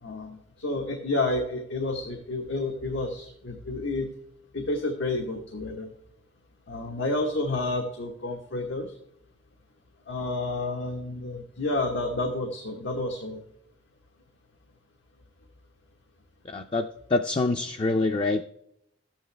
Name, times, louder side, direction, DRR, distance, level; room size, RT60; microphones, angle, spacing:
voice 1, 0.0-4.1 4.5-5.9 6.7-8.9 10.1-13.4, left 2 dB, 90° left, 2 dB, 1.2 m, -30 dB
voice 2, 16.4-18.5, left 3 dB, 30° left, 6 dB, 0.4 m, -26 dB
12.5 x 8.9 x 3.3 m, 0.77 s
head